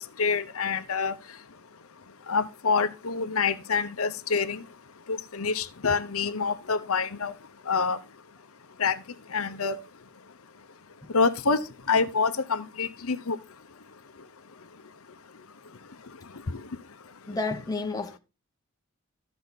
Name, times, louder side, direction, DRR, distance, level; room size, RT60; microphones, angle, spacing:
voice 1, 0.2-1.1 2.3-4.6 5.1-7.3 7.7-8.0 8.8-9.0 9.3-9.8 11.1-11.6 11.9-13.4 16.5-16.6, left 5 dB, 80° left, 0.9 m, -26 dB
voice 2, 17.3-18.2, left 3 dB, 15° left, 1.0 m, -30 dB
14.0 x 5.9 x 4.0 m
head